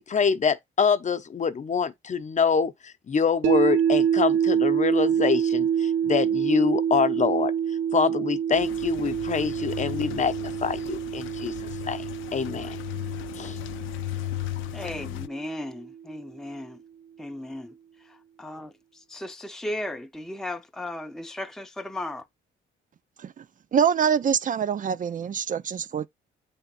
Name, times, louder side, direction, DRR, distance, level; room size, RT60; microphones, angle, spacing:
voice 1, 0.0-7.5 7.9-11.5 11.9-12.8 13.3-13.6, left 6 dB, 35° left, 0.8 m, -25 dB
sound 1, 3.4-15.5, right 8 dB, 85° right, 0.8 m, -27 dB
sound 2, 8.6-15.3, left 19 dB, 80° left, 0.4 m, -36 dB
voice 2, 14.7-16.8 17.2-17.7 18.0-22.3, left 1 dB, ahead, 0.6 m, -36 dB
voice 3, 23.7-26.1, right 7 dB, 40° right, 0.5 m, -25 dB
7.9 x 3.5 x 4.1 m
cardioid pair, 90°, 20 cm